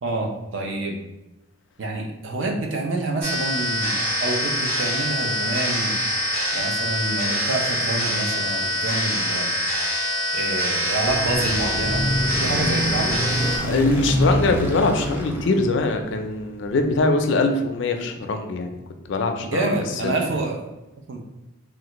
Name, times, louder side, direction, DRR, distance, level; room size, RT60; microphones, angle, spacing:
voice 1, 0.0-1.0 1.8-6.0 6.5-9.5 10.3-12.0 12.4-13.2 19.4-20.7 21.1-21.2, right 2 dB, 65° right, 1 dB, 0.5 m, -27 dB
sound 1, 3.2-13.6, equal, 50° right, 1.0 m, -25 dB
sound 2, 11.0-16.5, equal, 10° right, 0.4 m, -26 dB
voice 2, 13.6-18.7 19.1-19.7 20.0-20.1, left 3 dB, 60° left, 5 dB, 0.4 m, -22 dB
3.3 x 2.4 x 2.9 m, 0.98 s
head